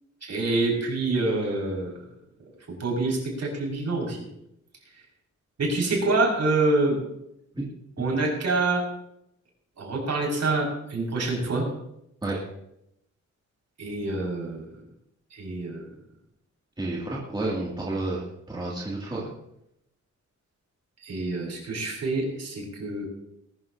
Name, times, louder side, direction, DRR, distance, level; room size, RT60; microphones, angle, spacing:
voice 1, 0.2-1.9 2.8-4.2 5.6-7.0 8.0-8.8 9.8-11.7 13.8-14.6 15.3-15.9 21.0-23.1, right 2 dB, 60° right, -1 dB, 5.6 m, -26 dB
voice 2, 16.8-19.3, right 2 dB, 15° right, -5 dB, 2.5 m, -30 dB
20.5 x 13.0 x 2.8 m, 0.79 s
wide cardioid pair, 155°, 31 cm